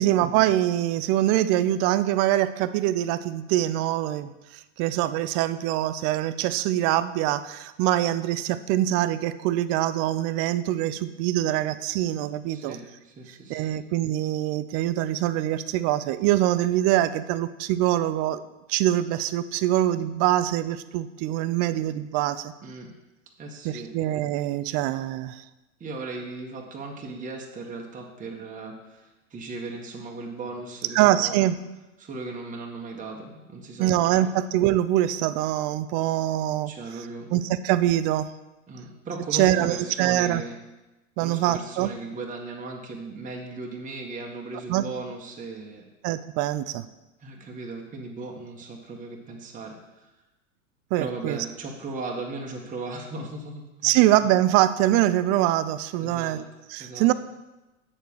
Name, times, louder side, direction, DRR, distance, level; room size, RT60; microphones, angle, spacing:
voice 1, 0.0-12.8 13.5-18.4 18.7-22.5 23.6-25.4 30.9-31.6 33.8-36.7 37.0-38.3 39.3-40.4 41.2-41.9 44.7-44.9 46.0-46.8 50.9-51.4 53.8-57.1, right 13 dB, 35° right, 14 dB, 0.5 m, -24 dB
voice 2, 12.5-13.8 22.6-22.9 23.4-23.9 25.8-31.4 32.0-33.9 34.2-34.3 36.7-37.3 38.7-40.6 41.2-45.8 47.2-50.1 50.9-54.0 56.0-56.4 56.8-57.1, right 3 dB, 20° right, 0 dB, 1.4 m, -37 dB
8.7 x 6.8 x 4.7 m, 1.0 s
hypercardioid pair, 90°, 40 cm